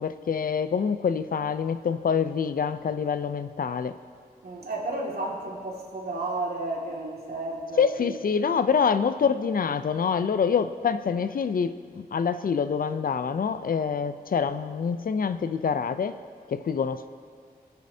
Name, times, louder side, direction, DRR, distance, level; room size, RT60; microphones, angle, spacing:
voice 1, 0.0-4.0 7.8-16.2 16.5-17.1, left 6 dB, 65° left, 12 dB, 0.5 m, -26 dB
voice 2, 4.4-8.2, right 2 dB, 75° right, -4 dB, 2.2 m, -32 dB
23.5 x 8.2 x 2.8 m, 2.1 s
wide cardioid pair, 75°, 16 cm